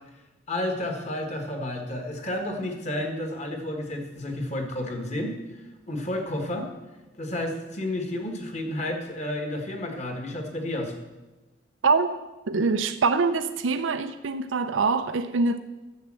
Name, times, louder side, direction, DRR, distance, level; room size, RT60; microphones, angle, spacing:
voice 1, 0.5-5.4 5.9-6.7 7.2-11.0, left 1 dB, 35° left, 1.6 m, -31 dB
voice 2, 11.8-12.2 12.5-15.6, right 4 dB, 85° right, 0.6 m, -24 dB
10.5 x 7.2 x 7.6 m
head